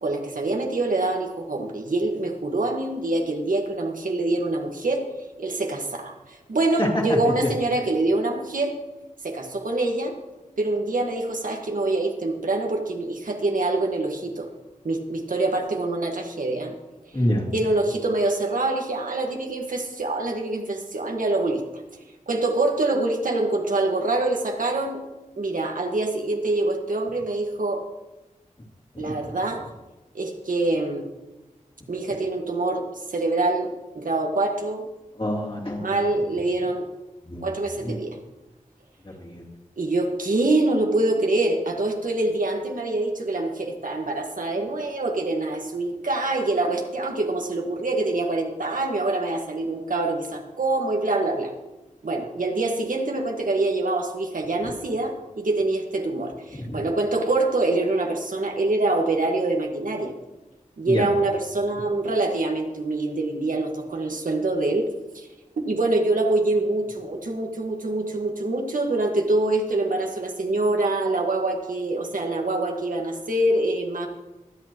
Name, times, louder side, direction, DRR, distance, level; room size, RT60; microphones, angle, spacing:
voice 1, 0.0-5.1 5.4-8.8 9.2-10.1 10.6-14.5 14.8-16.7 17.5-21.8 22.3-25.0 25.4-27.8 29.0-29.6 30.1-31.1 31.9-32.9 33.1-34.9 35.8-36.9 37.4-38.2 39.8-51.5 52.0-60.1 60.8-64.9 65.1-65.3 65.7-74.1, right 2 dB, 80° right, 2 dB, 1.7 m, -25 dB
voice 2, 6.8-7.5 17.1-17.5 29.0-29.1 35.2-36.0 37.2-37.5 37.8-37.9 39.0-39.4 56.7-56.8 60.9-61.1, left 1 dB, 40° left, -3 dB, 3.0 m, -26 dB
23.5 x 8.3 x 3.1 m, 1.0 s
wide cardioid pair, 70°, 14 cm